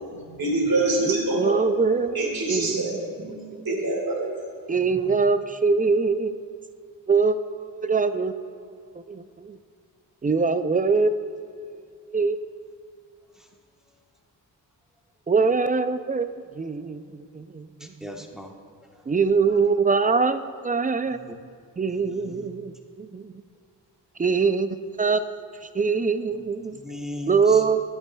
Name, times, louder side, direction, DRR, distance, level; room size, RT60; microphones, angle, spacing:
voice 1, 0.1-1.6 2.1-3.3 3.6-4.3, right 2 dB, 50° right, -2 dB, 2.1 m, -25 dB
voice 2, 1.0-3.6 4.7-6.5 7.1-9.6 10.2-12.5 15.3-16.3 16.5-17.9 19.1-21.4 21.8-23.3 24.2-25.2 25.7-26.8 27.3-27.8, right 4 dB, 20° right, 11 dB, 0.3 m, -24 dB
voice 3, 17.8-18.5 21.9-22.5 26.8-27.6, left 1 dB, ahead, 1 dB, 1.1 m, -37 dB
10.5 x 8.3 x 2.2 m, 2.3 s
cardioid pair, 45°, 45 cm